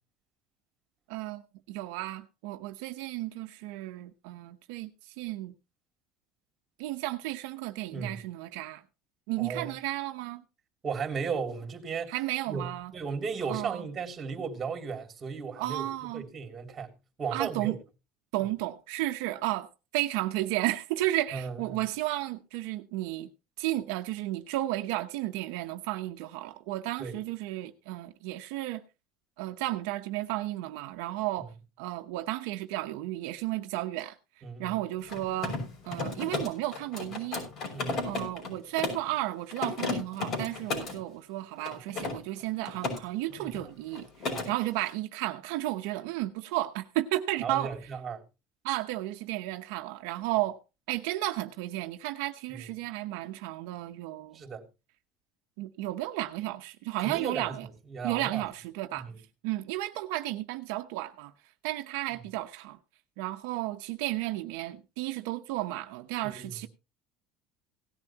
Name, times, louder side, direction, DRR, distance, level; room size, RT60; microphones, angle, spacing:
voice 1, 1.1-1.4 1.7-5.5 6.8-8.8 9.3-10.4 12.1-12.9 13.5-13.8 15.6-16.2 17.3-17.8 18.3-23.3 23.6-28.8 29.4-31.5 31.8-34.2 34.6-35.6 35.8-37.4 38.0-44.1 44.4-47.7 48.6-50.6 50.9-54.4 55.6-57.7 58.0-59.1 59.4-61.3 61.6-62.8 63.2-66.7, right 16 dB, 85° right, 0.9 m, -33 dB
voice 2, 7.9-8.2 9.4-9.8 10.8-12.1 12.5-15.9 16.1-17.8 21.3-21.8 27.0-27.2 34.4-34.8 37.7-38.3 43.4-43.6 44.3-44.5 47.4-48.2 52.5-52.7 54.3-54.7 57.0-58.4 58.9-59.2 62.1-62.2 66.2-66.5, right 5 dB, 30° right, 3.0 m, -36 dB
Mechanisms, 35.0-39.1 39.5-41.0 41.6-43.0 43.3-43.6 43.9-44.5, left 3 dB, 50° left, 5.9 m, -34 dB
17.5 x 11.0 x 2.9 m
supercardioid pair, 120°, 0 cm